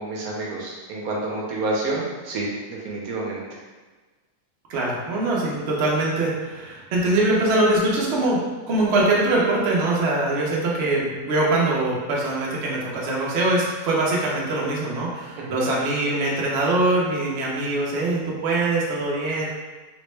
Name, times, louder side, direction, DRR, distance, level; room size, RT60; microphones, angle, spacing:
voice 1, 0.0-3.4 15.4-15.7, right 2 dB, 75° right, -3 dB, 1.1 m, -29 dB
voice 2, 4.7-8.4 8.7-19.5, right 2 dB, 60° right, -4 dB, 0.8 m, -23 dB
3.5 x 2.1 x 3.1 m, 1.3 s
omnidirectional pair, 1.6 m